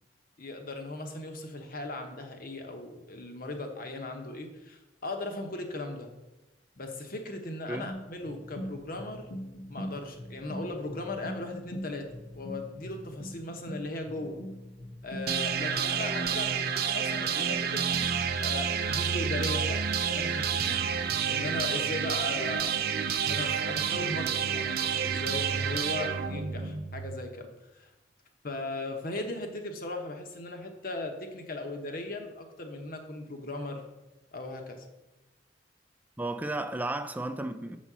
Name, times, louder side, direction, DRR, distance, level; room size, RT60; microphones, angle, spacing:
voice 1, 0.4-6.1 6.7-9.3 9.7-12.1 12.3-14.4 15.0-18.1 18.4-22.7 23.3-27.9 28.4-33.8 34.3-34.8, left 2 dB, 55° left, 1.1 m, -38 dB
sound 1, 7.9-15.6, equal, 85° left, 1.5 m, -42 dB
sound 2, 15.3-27.2, right 7 dB, 60° right, 0.5 m, -29 dB
voice 2, 36.2-37.8, right 2 dB, 10° right, 0.4 m, -33 dB
7.2 x 4.2 x 6.1 m
head